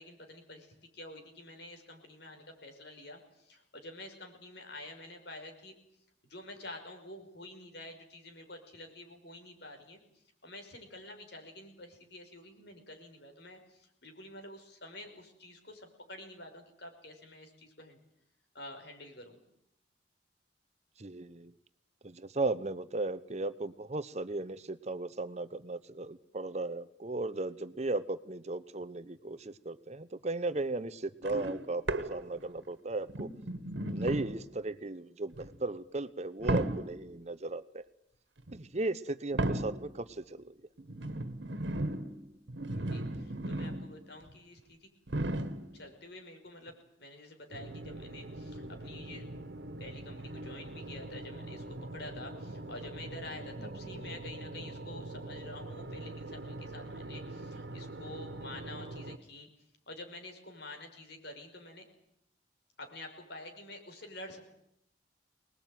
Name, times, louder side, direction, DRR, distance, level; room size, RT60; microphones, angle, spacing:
voice 1, 0.0-5.7 6.3-10.0 10.4-18.0 18.5-19.4 33.9-34.1 42.7-44.9 45.7-49.3 49.8-59.5 59.9-61.9 62.8-64.4, left 1 dB, 65° left, 4 dB, 5.5 m, -48 dB
voice 2, 21.0-21.5 22.0-33.3 33.9-37.8 38.5-40.6 53.6-53.8, right 2 dB, 40° right, 13 dB, 0.9 m, -36 dB
sound 1, 31.2-32.6 33.1-34.5 35.3-35.6 36.4-37.1 38.4-38.6 39.3-40.0 40.8-44.0 44.3-44.4 45.1-45.8 46.7-46.8, right 1 dB, 85° right, 1.7 m, -35 dB
sound 2, 47.5-59.2, right 2 dB, 70° right, 1.7 m, -43 dB
25.0 x 20.5 x 9.2 m, 0.76 s
head